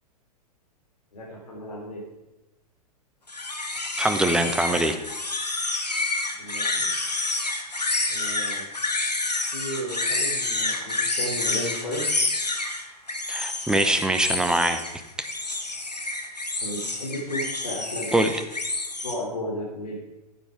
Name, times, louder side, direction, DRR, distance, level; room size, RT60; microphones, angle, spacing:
voice 1, 1.1-2.0 6.4-6.9 8.1-8.6 9.5-12.1 16.6-18.2 19.0-19.9, equal, 70° left, -4 dB, 3.5 m, -34 dB
sound 1, 3.3-19.1, left 2 dB, 85° left, 1.5 m, -28 dB
voice 2, 4.0-5.0 13.3-14.8 18.1-18.4, right 1 dB, 5° right, 7 dB, 0.9 m, -23 dB
14.5 x 8.1 x 4.8 m, 0.95 s
figure-of-eight pair, 105°, 21 cm